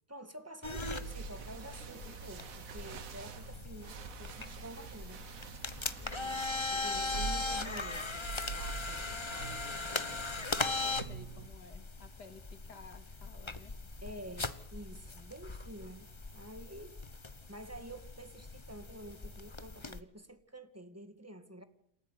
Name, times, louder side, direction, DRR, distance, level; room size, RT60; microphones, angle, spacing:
voice 1, 0.1-5.3 6.7-9.9 14.0-17.0 17.5-21.6, right 1 dB, 10° right, 1.9 m, -49 dB
sound 1, 0.6-20.0, left 3 dB, 20° left, 0.9 m, -40 dB
sound 2, 0.8-11.5, right 6 dB, 55° right, 1.5 m, -45 dB
voice 2, 6.0-6.5 10.8-13.7, left 4 dB, 80° left, 2.8 m, -54 dB
28.0 x 14.5 x 9.6 m
omnidirectional pair, 1.8 m